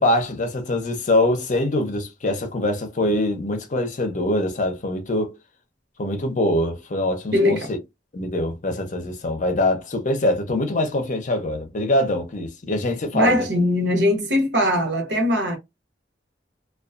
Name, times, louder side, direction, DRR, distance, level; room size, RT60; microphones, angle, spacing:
voice 1, 0.0-5.4 6.0-7.8 8.1-13.4, left 1 dB, 45° left, 0.6 m, -23 dB
voice 2, 7.3-7.7 13.1-15.6, left 1 dB, 90° right, 0.9 m, -20 dB
2.4 x 2.3 x 2.4 m
head